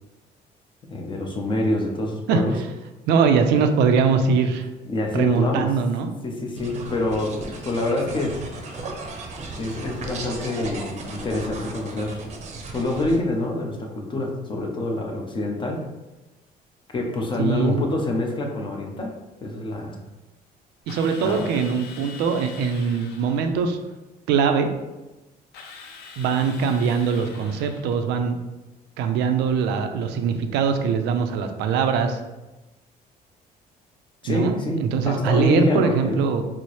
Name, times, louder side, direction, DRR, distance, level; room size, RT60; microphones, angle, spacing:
voice 1, 0.9-2.6 4.8-5.7 6.2-8.4 9.6-12.2 12.7-15.8 16.9-19.1 19.4-20.0 21.2-21.5 34.2-36.2, left 2 dB, 30° left, 1 dB, 0.6 m, -26 dB
voice 2, 3.1-4.7 5.1-6.1 17.4-17.8 20.9-23.8 24.3-24.7 26.2-28.4 29.0-32.2 34.2-34.6 34.8-36.4, right 6 dB, 85° right, 7 dB, 0.4 m, -22 dB
sound 1, 6.6-13.2, right 3 dB, 40° right, 0.6 m, -36 dB
Drill, 20.9-23.6 25.5-28.0, left 5 dB, 75° left, 0.5 m, -43 dB
4.2 x 2.0 x 3.1 m, 1.1 s
cardioid pair, 110°, 17 cm